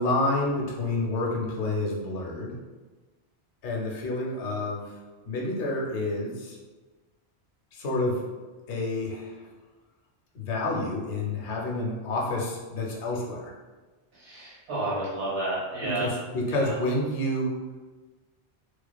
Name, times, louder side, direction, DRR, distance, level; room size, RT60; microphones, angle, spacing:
voice 1, 0.0-2.6 3.6-5.0 5.3-6.6 7.7-8.2 8.7-9.4 10.3-13.5 15.8-17.5, left 2 dB, 85° left, -2 dB, 0.9 m, -29 dB
voice 2, 14.1-16.1 16.5-16.8, right 2 dB, 80° right, -6 dB, 1.3 m, -31 dB
2.4 x 2.3 x 2.2 m, 1.3 s
omnidirectional pair, 1.2 m